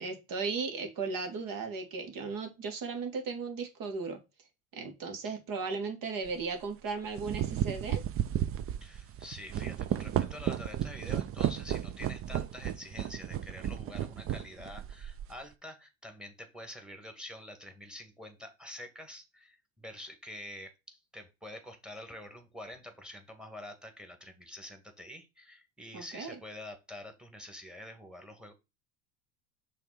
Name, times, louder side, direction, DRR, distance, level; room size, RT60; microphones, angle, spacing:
voice 1, 0.0-4.2 4.7-8.0 25.9-26.4, right 4 dB, 50° right, 2.5 m, -36 dB
sound 1, 6.3-6.4 7.0-15.4, right 11 dB, 35° right, 0.6 m, -33 dB
voice 2, 8.8-28.5, left 1 dB, ahead, 2.0 m, -47 dB
5.8 x 3.6 x 5.8 m
hypercardioid pair, 80°, 42 cm